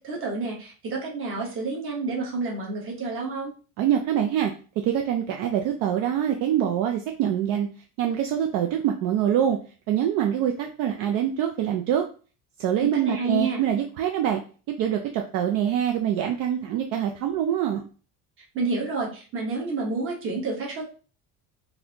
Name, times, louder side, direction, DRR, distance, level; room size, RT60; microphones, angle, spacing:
voice 1, 0.0-3.5 12.8-13.6 18.4-20.8, right 3 dB, 35° right, -1 dB, 1.1 m, -29 dB
voice 2, 3.8-7.7 8.0-9.6 9.9-12.0 12.6-14.4 14.8-17.8, right 10 dB, 60° right, 3 dB, 0.5 m, -25 dB
4.0 x 2.6 x 2.8 m, 0.37 s
cardioid pair, 170°, 37 cm